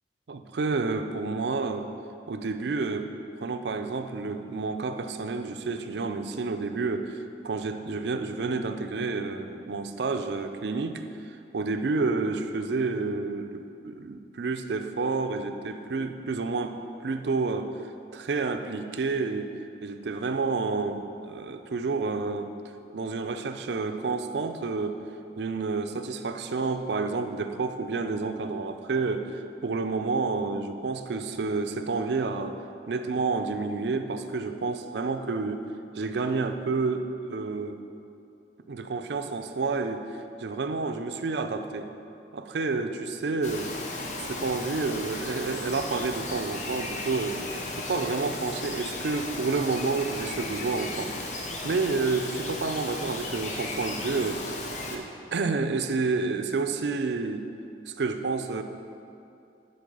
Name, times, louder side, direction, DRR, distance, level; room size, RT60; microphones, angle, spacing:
voice 1, 0.3-1.9 2.3-3.1 3.4-16.8 17.0-17.7 18.1-19.5 19.8-22.5 22.9-25.0 25.4-32.6 32.9-35.7 36.0-37.8 38.7-41.9 42.3-43.7 44.2-47.4 47.7-51.1 51.6-54.4 54.9-57.5 57.9-58.6, right 4 dB, 75° right, 8 dB, 0.4 m, -29 dB
Bird vocalization bird call bird song, 43.4-55.0, left 2 dB, 40° left, 0.7 m, -35 dB
9.3 x 4.2 x 5.3 m, 2.6 s
head